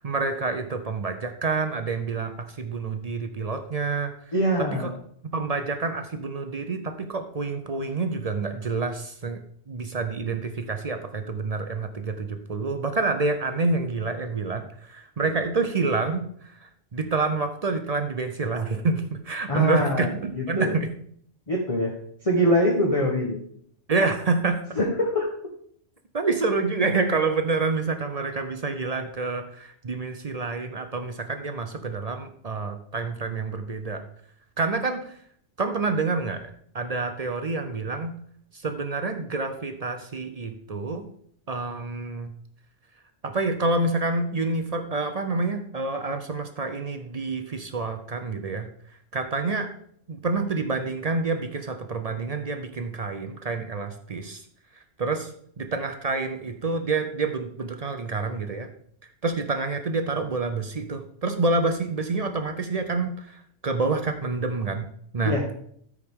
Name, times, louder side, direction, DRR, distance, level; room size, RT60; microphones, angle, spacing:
voice 1, 0.0-4.1 4.8-4.9 5.3-9.4 9.7-20.9 23.9-24.8 26.1-34.0 34.6-35.2 35.6-38.1 38.5-41.1 41.5-42.3 43.2-48.7 49.1-49.7 50.1-54.4 55.0-55.3 55.6-58.7 59.2-64.9 65.1-65.4, right 3 dB, 45° right, 7 dB, 0.5 m, -28 dB
voice 2, 4.3-4.9 19.5-20.8 21.5-21.9 22.2-23.4 24.8-25.3 65.2-65.4, equal, 30° left, -2 dB, 1.1 m, -24 dB
13.5 x 4.8 x 3.6 m, 0.65 s
omnidirectional pair, 1.3 m